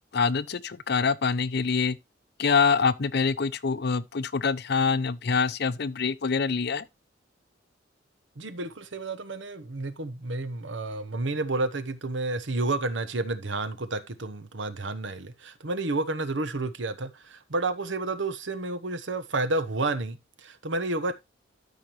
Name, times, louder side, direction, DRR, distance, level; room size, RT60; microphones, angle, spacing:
voice 1, 0.1-2.0 2.4-6.8, left 5 dB, 60° left, 0.6 m, -25 dB
voice 2, 8.4-21.1, right 2 dB, 70° right, 1.1 m, -30 dB
13.0 x 5.2 x 3.1 m
head